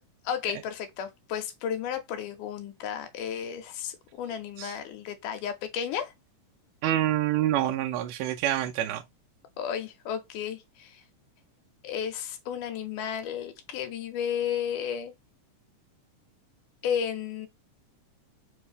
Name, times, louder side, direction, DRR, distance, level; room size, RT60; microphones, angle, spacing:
voice 1, 0.3-6.1 9.6-11.0 11.8-15.1 16.8-17.5, left 8 dB, 90° left, 2.2 m, -33 dB
voice 2, 6.8-9.0, right 13 dB, 80° right, 2.0 m, -27 dB
5.1 x 2.7 x 3.3 m
omnidirectional pair, 3.6 m